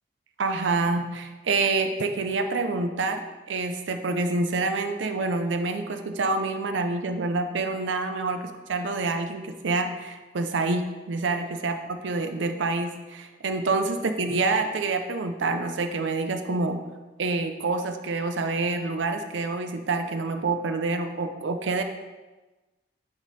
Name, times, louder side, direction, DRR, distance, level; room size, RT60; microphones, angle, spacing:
voice 1, 0.4-3.2 3.5-16.8 17.2-21.8, right 3 dB, 80° right, 7 dB, 0.5 m, -27 dB
8.8 x 3.8 x 4.0 m, 1.2 s
head